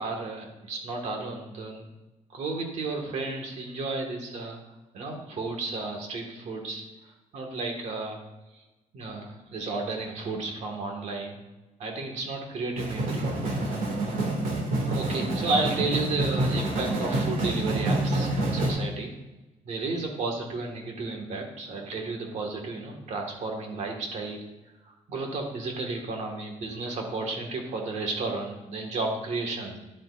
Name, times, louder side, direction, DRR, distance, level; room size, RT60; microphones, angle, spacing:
voice 1, 0.0-1.9 2.3-4.6 4.9-8.2 8.9-11.4 11.8-13.2 14.9-19.1 19.7-24.4 24.9-29.8, right 3 dB, 55° right, 2 dB, 1.8 m, -32 dB
sound 1, 12.8-18.7, right 2 dB, 90° right, 2.2 m, -27 dB
11.0 x 8.2 x 2.5 m, 1.1 s
cardioid pair, 160°, 14 cm